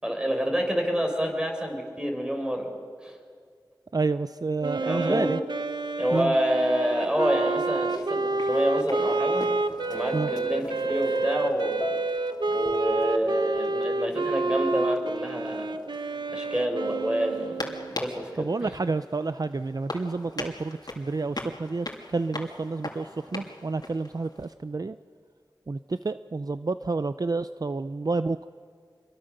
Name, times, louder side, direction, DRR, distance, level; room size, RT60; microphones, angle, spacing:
voice 1, 0.0-2.7 3.0-3.1 4.8-5.3 6.0-9.5 9.9-11.9 12.5-15.8 16.3-17.7 18.0-18.7, equal, 10° right, 2 dB, 5.1 m, -28 dB
voice 2, 3.9-5.4 6.1-6.3 10.1-10.3 18.4-21.9 22.1-25.0 25.7-28.4, right 3 dB, 55° right, 12 dB, 0.5 m, -29 dB
Wind instrument woodwind instrument, 4.6-18.0, right 3 dB, 70° right, 0.9 m, -29 dB
sound 1, 7.1-24.5, left 2 dB, 60° left, 2.8 m, -43 dB
sound 2, 9.7-14.3, left 1 dB, 40° left, 1.5 m, -37 dB
27.0 x 22.5 x 6.6 m, 2.1 s
wide cardioid pair, 55°, 8 cm